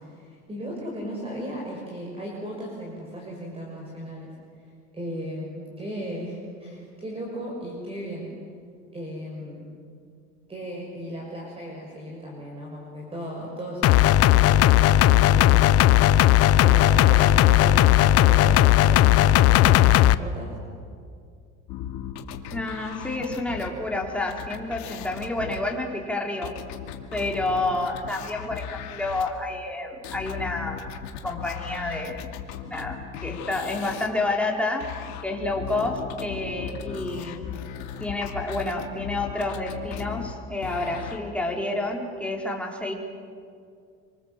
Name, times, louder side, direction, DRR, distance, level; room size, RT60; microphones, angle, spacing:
voice 1, 0.0-4.3 4.9-8.3 8.9-9.7 10.5-16.0 16.6-20.6, equal, 20° right, -2 dB, 6.3 m, -36 dB
sound 1, 13.8-20.2, left 13 dB, 55° left, 0.9 m, -16 dB
sound 2, 21.7-29.3 30.0-34.1 34.8-41.2, left 9 dB, 70° left, 2.6 m, -37 dB
voice 2, 22.5-26.6 27.1-30.8 31.2-32.3 32.7-34.9 35.2-37.4 38.0-42.9, left 2 dB, 5° left, 0 dB, 4.5 m, -29 dB
27.5 x 25.5 x 7.7 m, 2.3 s
cardioid pair, 115°, 29 cm